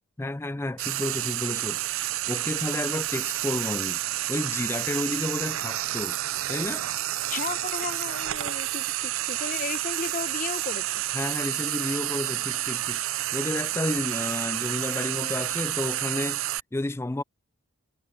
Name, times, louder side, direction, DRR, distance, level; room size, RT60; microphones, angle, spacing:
voice 1, 0.2-1.8 2.3-4.0 4.3-6.2 6.5-6.8 11.1-13.0 13.3-16.4 16.7-17.2, left 2 dB, 10° left, 0.4 m, -31 dB
Frying (food), 0.8-16.6, right 14 dB, 65° right, 0.5 m, -30 dB
voice 2, 7.3-10.9, left 5 dB, 40° left, 0.9 m, -34 dB
head